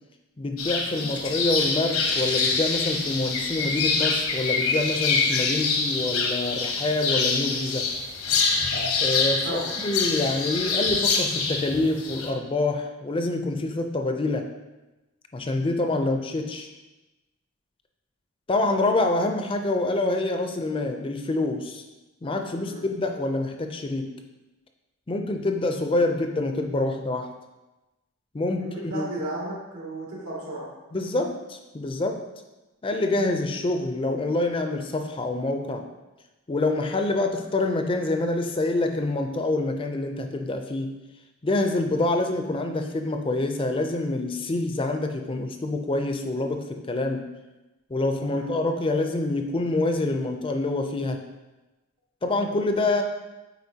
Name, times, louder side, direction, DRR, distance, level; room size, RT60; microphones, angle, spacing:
voice 1, 0.4-7.9 9.0-14.5 15.3-16.7 18.5-21.8 22.2-24.1 25.1-27.3 28.3-29.1 30.9-32.2 32.8-35.9 36.5-41.0 41.4-47.3 47.9-51.2 52.2-53.0, left 2 dB, 25° left, 5 dB, 0.4 m, -26 dB
sound 1, 0.6-12.3, left 4 dB, 80° left, 0.9 m, -25 dB
voice 2, 28.6-30.7 48.3-48.5, right 1 dB, 85° right, -5 dB, 2.2 m, -34 dB
8.0 x 4.6 x 2.8 m, 1.1 s
head